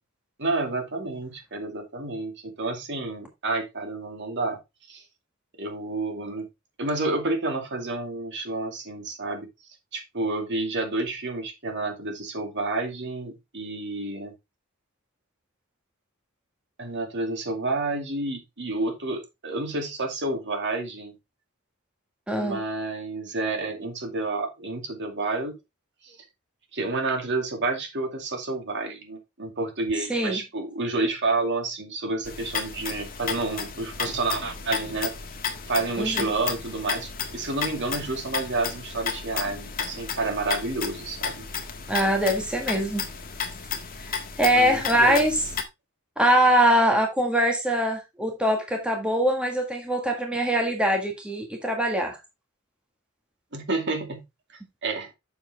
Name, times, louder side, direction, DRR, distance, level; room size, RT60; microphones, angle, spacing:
voice 1, 0.4-4.6 4.9-5.0 5.6-6.5 6.8-9.5 9.9-14.3 16.8-21.1 22.3-25.6 26.0-26.2 26.7-35.1 35.7-41.4 44.5-45.2 53.5-54.2 54.8-55.1, right 2 dB, 55° right, 2.4 m, -29 dB
voice 2, 22.3-22.6 30.1-30.4 36.0-36.3 41.9-43.1 44.0-45.3 46.2-52.2, right 1 dB, 5° right, 1.7 m, -23 dB
sound 1, 32.2-45.6, left 6 dB, 45° left, 1.5 m, -33 dB
7.1 x 7.1 x 3.3 m
head